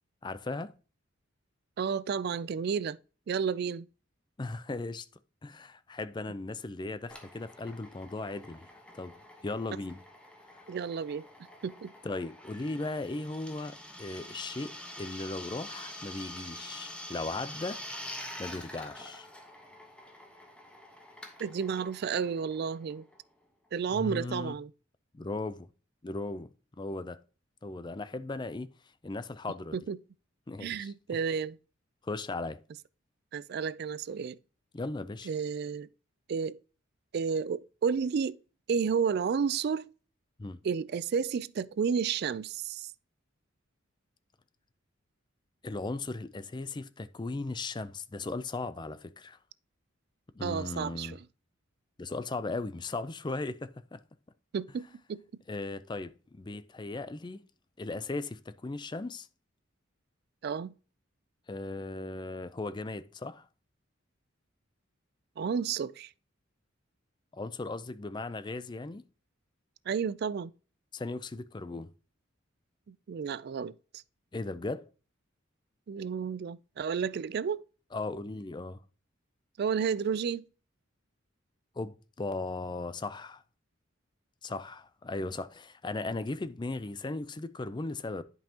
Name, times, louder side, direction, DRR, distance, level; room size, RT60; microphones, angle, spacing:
voice 1, 0.2-0.7 4.4-5.1 5.4-8.7 8.9-9.1 9.4-10.0 12.0-17.8 18.4-19.3 23.9-24.6 25.1-25.7 26.0-26.5 26.8-27.2 27.6-28.7 29.0-29.8 30.5-30.9 32.0-32.6 34.7-35.3 40.4-40.6 45.6-49.4 50.3-51.2 52.0-54.0 55.5-57.4 57.8-59.3 61.5-63.5 67.3-69.0 70.9-71.9 74.3-74.9 77.9-78.8 81.8-83.4 84.4-88.2, left 2 dB, 20° left, 0.4 m, -37 dB
voice 2, 1.8-3.0 3.3-3.9 10.7-11.3 11.6-11.9 21.4-23.1 23.7-24.7 29.7-30.0 30.6-31.6 33.3-34.4 35.3-35.9 36.3-36.6 37.1-38.4 38.7-39.9 40.6-42.9 50.4-51.2 54.5-55.2 60.4-60.7 65.4-66.1 69.9-70.5 72.9-73.7 75.9-77.6 79.6-80.4, right 6 dB, 50° right, 0.3 m, -31 dB
Drill, 7.1-23.4, left 1 dB, 5° left, 1.2 m, -46 dB
10.5 x 5.4 x 2.8 m
head